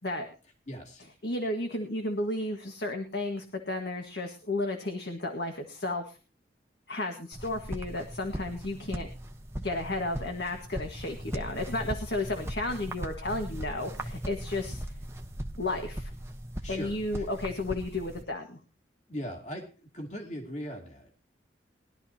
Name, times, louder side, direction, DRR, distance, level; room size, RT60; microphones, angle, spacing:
voice 1, 0.7-1.0 16.6-17.3 19.1-19.7 19.9-21.2, equal, 40° left, 2 dB, 2.6 m, -39 dB
voice 2, 1.2-6.2 6.9-9.1 9.6-14.9 15.6-16.1 16.7-18.6, left 2 dB, 65° left, 3 dB, 1.7 m, -33 dB
sound 1, 7.3-18.2, equal, 15° right, 1.0 m, -39 dB
21.5 x 12.5 x 2.9 m, 0.33 s
head